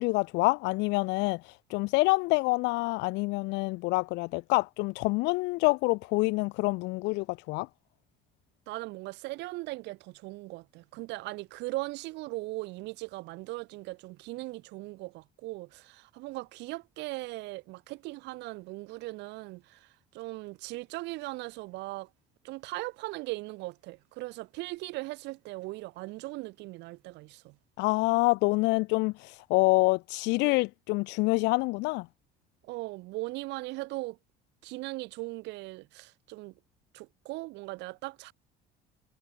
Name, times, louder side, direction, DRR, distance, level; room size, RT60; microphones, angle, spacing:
voice 1, 0.0-7.7 27.8-32.1, left 24 dB, 80° left, 0.4 m, -27 dB
voice 2, 8.7-19.9 20.1-22.1 22.4-27.5 32.7-34.2 34.6-36.5 36.9-38.3, right 21 dB, 80° right, 1.3 m, -39 dB
cardioid pair, 170°, 18 cm